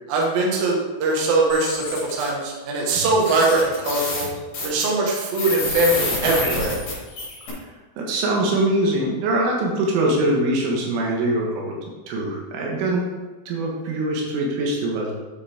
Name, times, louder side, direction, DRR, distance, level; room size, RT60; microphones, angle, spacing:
voice 1, 0.1-4.3 4.6-6.8, right 2 dB, 60° right, -2 dB, 2.8 m, -21 dB
sound 1, 1.5-2.3 2.9-3.0 3.2-7.5, left 2 dB, 45° left, 4.5 m, -28 dB
voice 2, 8.0-11.8 12.1-13.1 13.5-15.1, right 1 dB, 75° right, -1 dB, 3.8 m, -23 dB
9.6 x 7.5 x 3.6 m, 1.2 s
omnidirectional pair, 5.8 m